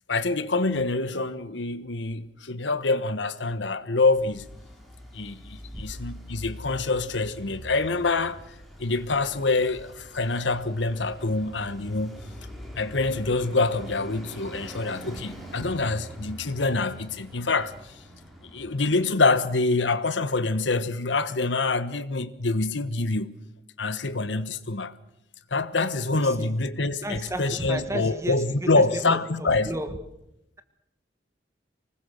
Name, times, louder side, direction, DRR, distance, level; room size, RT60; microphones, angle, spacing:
voice 1, 0.1-4.4 5.1-8.4 8.8-12.1 12.7-17.7 18.4-23.3 23.8-24.9 25.5-29.7, left 3 dB, 85° left, 1.3 m, -26 dB
Traffic noise roadway noise, 4.0-19.5, equal, ahead, 4.8 m, -44 dB
voice 2, 26.1-26.5 27.0-29.2 29.6-30.0, right 1 dB, 15° right, 1.3 m, -33 dB
25.5 x 19.5 x 6.6 m
head